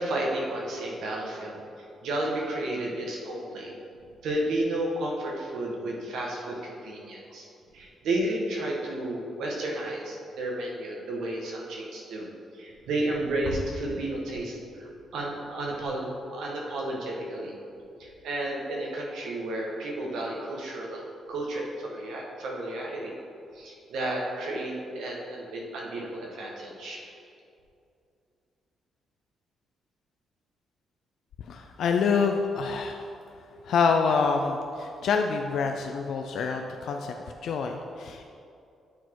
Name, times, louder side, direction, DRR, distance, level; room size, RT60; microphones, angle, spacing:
voice 1, 0.0-1.6 2.0-3.7 4.2-7.5 7.7-12.3 12.5-17.5 18.0-21.0 21.3-23.1 23.5-27.1, right 1 dB, 85° right, -2 dB, 1.3 m, -32 dB
voice 2, 31.4-33.1 33.6-38.3, left 5 dB, 65° left, 4 dB, 0.4 m, -27 dB
9.1 x 4.2 x 4.6 m, 2.6 s
cardioid pair, 165°, 0 cm